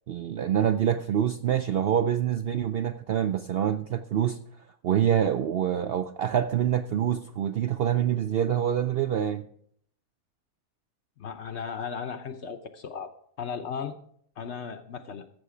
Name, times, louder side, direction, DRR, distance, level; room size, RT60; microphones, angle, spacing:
voice 1, 0.1-4.4 4.8-9.4, right 9 dB, 75° right, 0.5 m, -26 dB
voice 2, 11.2-13.1 13.4-13.9 14.4-15.3, left 6 dB, 60° left, 0.8 m, -36 dB
14.0 x 6.9 x 4.9 m
omnidirectional pair, 1.6 m